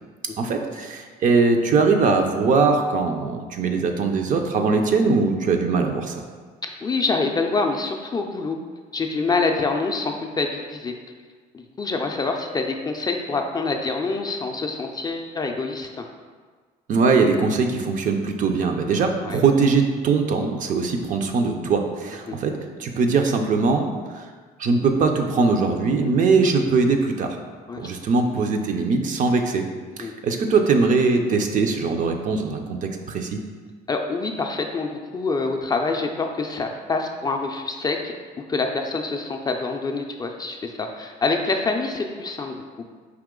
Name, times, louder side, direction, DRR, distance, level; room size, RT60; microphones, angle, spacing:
voice 1, 0.4-6.2 16.9-24.3 24.6-27.4 27.8-29.7 30.0-33.4, right 4 dB, 50° right, 5 dB, 0.5 m, -21 dB
voice 2, 6.8-8.6 8.9-10.9 11.5-16.0 19.2-19.4 22.3-22.4 27.7-27.9 30.0-30.1 33.9-38.1 38.5-42.6, left 3 dB, 25° left, 3 dB, 0.4 m, -26 dB
4.8 x 2.9 x 3.7 m, 1.5 s
cardioid pair, 110°, 17 cm